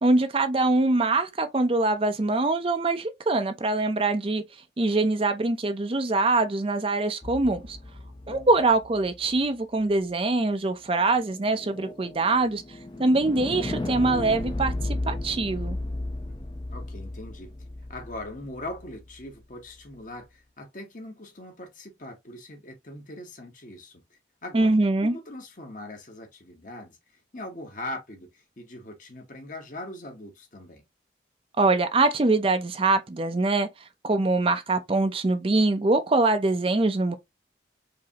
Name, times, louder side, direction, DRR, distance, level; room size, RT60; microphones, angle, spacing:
voice 1, 0.0-4.4 4.8-7.8 8.3-12.6 13.0-15.8 24.5-25.2 31.6-33.7 34.0-37.1, right 2 dB, 30° right, 0.5 m, -23 dB
sound 1, 7.2-9.4 11.2-19.3, left 1 dB, 25° left, 0.5 m, -35 dB
voice 2, 16.7-17.6 17.9-24.7 25.0-27.0 27.3-30.8, left 1 dB, 45° left, 1.1 m, -41 dB
4.9 x 2.7 x 2.9 m
head